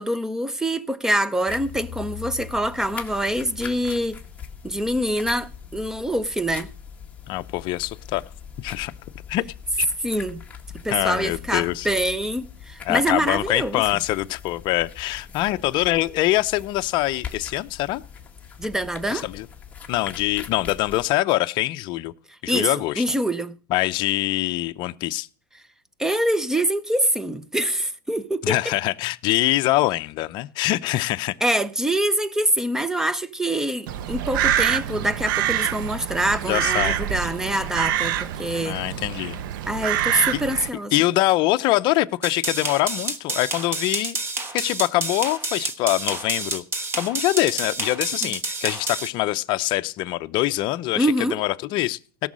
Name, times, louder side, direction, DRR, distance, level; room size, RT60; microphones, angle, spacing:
voice 1, 0.0-4.2 4.6-6.7 10.0-10.4 10.8-13.8 18.6-19.3 22.5-23.5 26.0-28.6 31.4-38.8 39.7-40.9 48.2-48.3 51.0-51.4, right 1 dB, 5° right, 0.6 m, -25 dB
sound 1, 1.5-21.0, left 7 dB, 10° left, 1.6 m, -41 dB
voice 2, 7.3-8.2 8.6-8.9 9.3-9.4 9.8-9.9 10.9-11.9 12.8-18.0 19.1-19.5 19.9-22.1 22.4-23.0 23.7-25.3 28.4-31.4 36.5-37.1 38.7-39.4 40.3-44.2 44.5-46.6 46.9-52.3, left 17 dB, 45° left, 0.6 m, -24 dB
Crow, 33.9-40.7, right 11 dB, 70° right, 0.8 m, -26 dB
sound 2, 42.2-49.1, right 3 dB, 20° right, 1.2 m, -29 dB
17.0 x 6.2 x 6.3 m
supercardioid pair, 135°, 11 cm